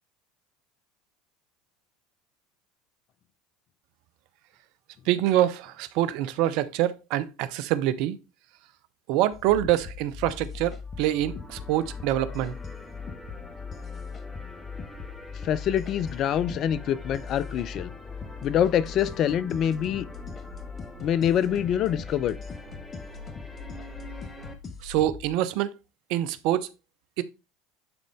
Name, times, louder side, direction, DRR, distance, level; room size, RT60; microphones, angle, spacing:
voice 1, 5.1-8.2 9.1-12.5 24.8-25.7 26.1-26.7 27.2-27.3, right 13 dB, 65° right, 0.6 m, -25 dB
sound 1, 9.3-25.3, left 5 dB, 35° left, 1.3 m, -40 dB
sound 2, 10.8-24.5, left 1 dB, 15° left, 1.4 m, -46 dB
voice 2, 15.4-17.9 18.4-20.1 21.0-22.4, left 9 dB, 50° left, 0.6 m, -25 dB
9.7 x 3.9 x 3.5 m
hypercardioid pair, 75°, 0 cm